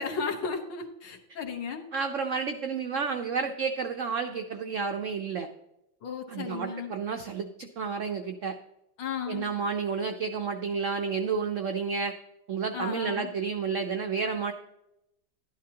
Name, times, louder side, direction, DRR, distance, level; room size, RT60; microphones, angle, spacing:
voice 1, 0.0-1.8 6.0-6.9 9.0-9.5 12.7-13.3, left 5 dB, 70° left, 3 dB, 1.7 m, -34 dB
voice 2, 1.9-5.5 6.3-8.6 9.3-12.1 12.5-14.5, right 5 dB, 85° right, 6 dB, 0.6 m, -31 dB
11.5 x 11.0 x 2.8 m, 0.87 s
omnidirectional pair, 2.1 m